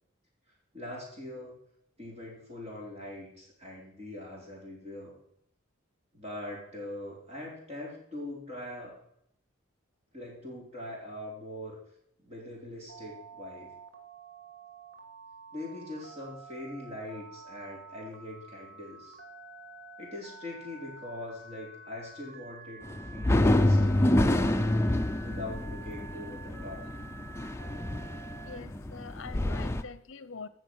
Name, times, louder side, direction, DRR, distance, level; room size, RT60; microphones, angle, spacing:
voice 1, 0.7-1.5 2.0-5.2 6.1-9.0 10.1-11.8 12.2-13.7 15.5-19.2 20.0-24.7 25.2-26.8, left 1 dB, 30° right, -2 dB, 3.9 m, -42 dB
Telephone, 12.9-28.6, right 3 dB, 75° right, 2.0 m, -49 dB
sound 1, 22.9-29.8, left 1 dB, 15° left, 0.5 m, -27 dB
voice 2, 28.4-30.5, left 5 dB, 70° left, 16 dB, 0.7 m, -44 dB
15.5 x 6.2 x 6.2 m, 0.73 s
head